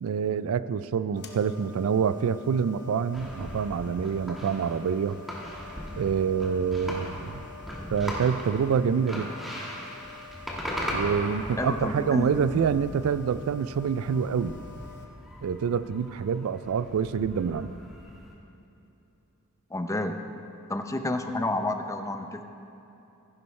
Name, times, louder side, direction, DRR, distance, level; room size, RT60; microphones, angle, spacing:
voice 1, 0.0-5.2 6.0-7.5 7.9-9.3 10.9-14.5 15.4-17.7, right 6 dB, 75° right, 15 dB, 0.3 m, -26 dB
sound 1, 1.2-15.1, left 5 dB, 55° left, 0.9 m, -48 dB
sound 2, 3.1-18.3, equal, ahead, 1.6 m, -39 dB
voice 2, 11.6-12.3 19.7-20.2 20.7-22.4, left 2 dB, 15° left, 6 dB, 0.5 m, -30 dB
15.0 x 11.0 x 3.2 m, 2.9 s
head